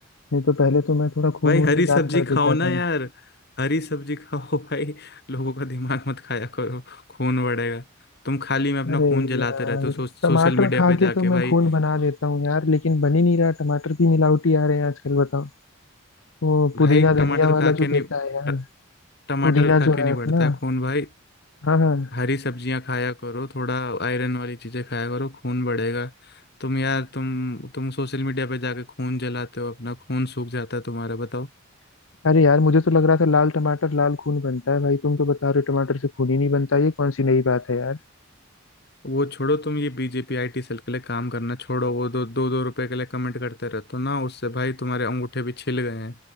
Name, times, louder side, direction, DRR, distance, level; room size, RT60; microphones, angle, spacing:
voice 1, 0.3-2.8 8.9-9.9 10.2-15.5 16.4-18.6 19.4-20.6 21.6-22.1 32.2-38.0, left 3 dB, 75° left, 0.8 m, -20 dB
voice 2, 1.4-3.1 3.6-7.8 8.2-11.5 16.7-18.1 18.5-18.6 19.3-21.1 22.1-31.5 39.0-46.2, left 2 dB, 55° left, 2.6 m, -26 dB
head